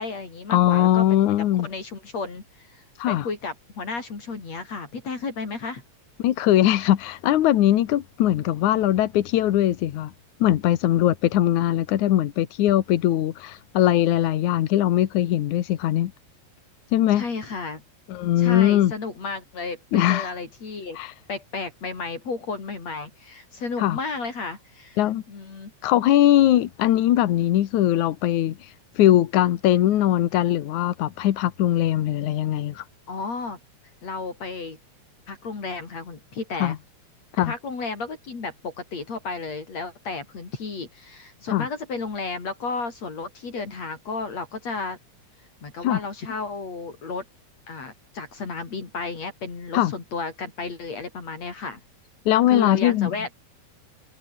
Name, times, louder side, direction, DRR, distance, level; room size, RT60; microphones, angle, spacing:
voice 1, 0.0-1.3 1.6-5.8 17.1-17.8 18.4-21.0 21.3-25.0 25.3-25.7 33.1-33.6 34.0-34.8 35.3-36.8 37.3-45.0 45.6-47.2 47.7-51.8 52.5-53.3, left 4 dB, 60° left, 5.7 m, -33 dB
voice 2, 0.5-1.7 3.0-3.3 6.2-10.1 10.4-16.1 16.9-17.2 18.1-18.9 19.9-20.3 21.0-21.1 23.8-24.0 25.0-25.2 25.8-32.8 36.6-36.8 37.4-37.5 41.5-41.7 45.8-46.0 49.7-49.9 52.3-53.1, left 13 dB, 85° left, 2.6 m, -21 dB
omnidirectional pair, 3.3 m